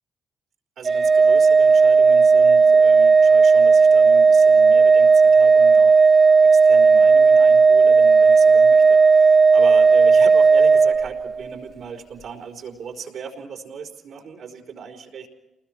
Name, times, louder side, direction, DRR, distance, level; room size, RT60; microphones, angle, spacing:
Organ, 0.8-11.5, right 4 dB, 35° right, 0.6 m, -14 dB
voice 1, 0.8-6.0 6.4-15.3, right 6 dB, 65° right, 1 dB, 4.5 m, -37 dB
29.5 x 20.5 x 4.5 m, 1.0 s
cardioid pair, 90°, 0 cm